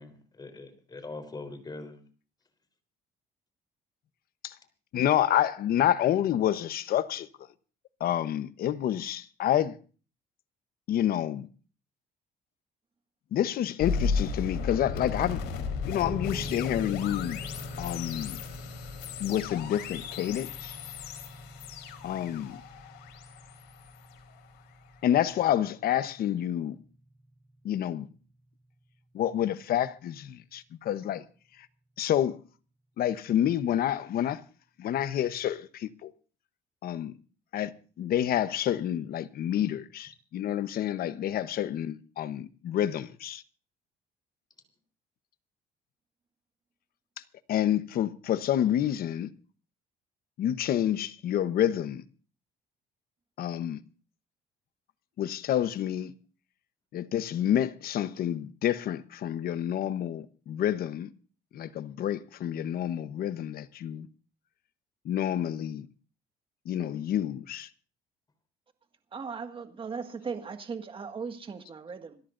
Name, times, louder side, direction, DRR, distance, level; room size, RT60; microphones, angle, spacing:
voice 1, 0.0-2.0, left 3 dB, 25° left, 3.8 m, -42 dB
voice 2, 4.9-7.3 8.0-9.8 10.9-11.5 13.3-15.4 15.8-17.4 17.8-18.4 19.2-20.8 22.0-22.6 25.0-26.8 27.6-28.1 29.1-31.2 32.0-32.4 33.0-34.4 34.8-36.1 36.8-37.1 37.5-37.7 38.0-43.4 47.5-49.3 50.4-52.0 53.4-53.8 55.2-56.1 56.9-61.1 61.5-64.1 65.0-65.9 66.7-67.7, left 11 dB, 60° left, 1.0 m, -28 dB
sound 1, 13.8-24.8, left 5 dB, 85° left, 3.9 m, -35 dB
sound 2, 16.0-28.6, left 1 dB, 5° left, 5.6 m, -45 dB
voice 3, 69.1-72.2, right 5 dB, 30° right, 1.8 m, -38 dB
26.5 x 13.5 x 2.6 m
cardioid pair, 110°, 17 cm